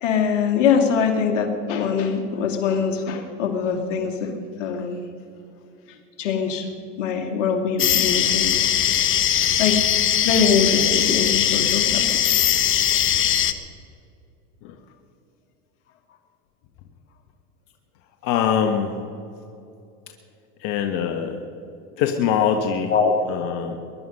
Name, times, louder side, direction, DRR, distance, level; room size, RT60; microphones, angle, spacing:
voice 1, 0.0-5.1 6.2-6.7 7.0-8.6 9.6-9.9 10.2-12.5 22.9-23.4, left 6 dB, 85° left, 4 dB, 2.3 m, -23 dB
sound 1, 7.8-13.5, left 10 dB, 35° left, 1.1 m, -20 dB
voice 2, 18.2-18.9 20.6-21.4 22.0-22.9 23.3-23.8, left 8 dB, 60° left, 5 dB, 1.5 m, -23 dB
21.5 x 11.5 x 5.5 m, 2.6 s
supercardioid pair, 105°, 36 cm